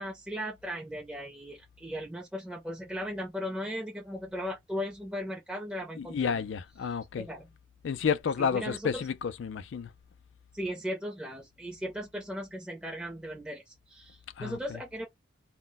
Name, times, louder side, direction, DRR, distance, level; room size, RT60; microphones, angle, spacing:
voice 1, 0.0-6.4 7.2-7.5 8.4-9.1 10.5-15.1, equal, 5° right, 0.6 m, -37 dB
voice 2, 6.0-7.3 7.8-9.9 14.4-14.8, left 6 dB, 70° left, 0.4 m, -31 dB
2.1 x 2.1 x 3.8 m
head